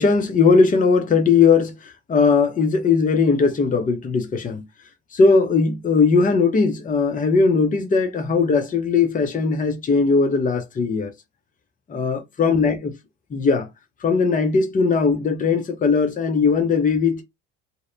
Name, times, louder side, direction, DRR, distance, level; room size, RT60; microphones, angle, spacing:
voice 1, 0.0-1.7 2.1-4.6 5.1-11.1 11.9-12.8 13.3-13.7 14.0-17.2, left 4 dB, 20° left, 0.6 m, -19 dB
2.7 x 2.0 x 2.4 m
hypercardioid pair, 70°, 36 cm